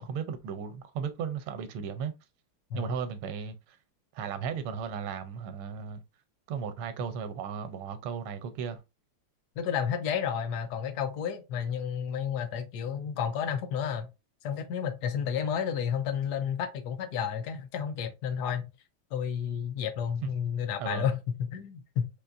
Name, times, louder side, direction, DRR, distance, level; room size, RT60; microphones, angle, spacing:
voice 1, 0.0-2.1 2.7-3.6 4.1-6.0 6.5-8.8 20.2-20.3 20.8-21.1, right 7 dB, 85° right, 1.5 m, -35 dB
voice 2, 9.6-14.1 14.4-18.7 19.1-22.1, left 8 dB, 75° left, 0.9 m, -31 dB
4.2 x 2.9 x 2.5 m
omnidirectional pair, 2.4 m